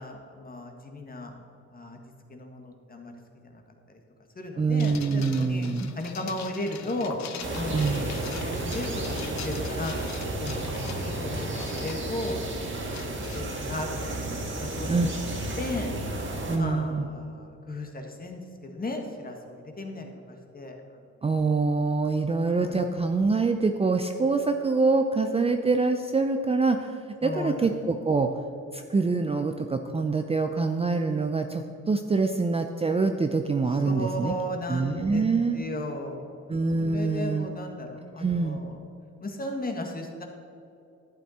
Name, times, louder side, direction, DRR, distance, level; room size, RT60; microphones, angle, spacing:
voice 1, 0.0-1.4 1.7-2.0 2.3-3.1 3.4-3.6 3.9-4.0 4.3-5.7 5.9-7.2 7.5-9.9 10.4-12.4 13.0-14.2 14.6-15.3 15.6-15.9 16.5-20.8 22.6-22.8 27.2-27.7 33.8-35.3 35.5-36.3 36.8-38.8 39.2-40.2, left 1 dB, 30° left, 3 dB, 1.6 m, -35 dB
voice 2, 4.6-5.9 7.7-8.0 14.9-15.1 16.5-17.1 21.2-26.9 27.2-28.3 28.7-34.3 34.7-35.6 36.5-37.5 38.2-38.6, right 4 dB, 20° right, 6 dB, 0.5 m, -25 dB
sound 1, 4.8-14.3, left 8 dB, 65° left, 0.8 m, -44 dB
sound 2, 7.4-16.6, right 2 dB, 40° right, 2.0 m, -32 dB
11.0 x 9.1 x 4.3 m, 2.7 s
cardioid pair, 90°, 30 cm